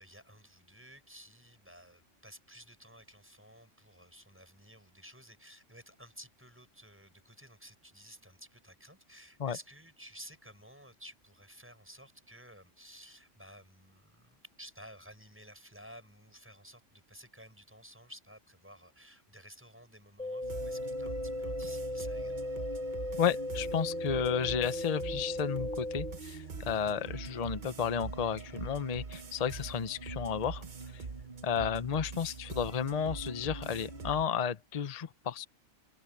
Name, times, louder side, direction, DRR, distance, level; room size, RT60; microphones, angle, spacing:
voice 1, 0.0-22.6, equal, 10° right, 7.2 m, -54 dB
sound 1, 20.2-26.2, left 1 dB, 5° left, 0.5 m, -37 dB
sound 2, 20.4-34.3, right 4 dB, 40° right, 1.1 m, -43 dB
voice 2, 23.2-31.0 31.4-35.5, left 7 dB, 35° left, 0.8 m, -32 dB
omnidirectional pair, 1.3 m